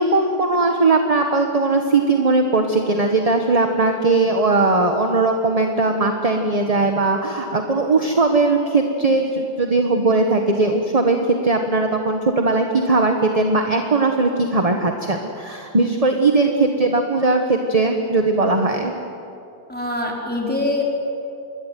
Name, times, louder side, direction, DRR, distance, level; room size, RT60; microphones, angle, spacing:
voice 1, 0.0-11.2 11.4-18.9, right 3 dB, 20° right, 4 dB, 1.4 m, -19 dB
voice 2, 19.7-20.8, left 2 dB, 5° left, -2 dB, 4.7 m, -24 dB
26.5 x 21.5 x 9.3 m, 2.7 s
omnidirectional pair, 1.8 m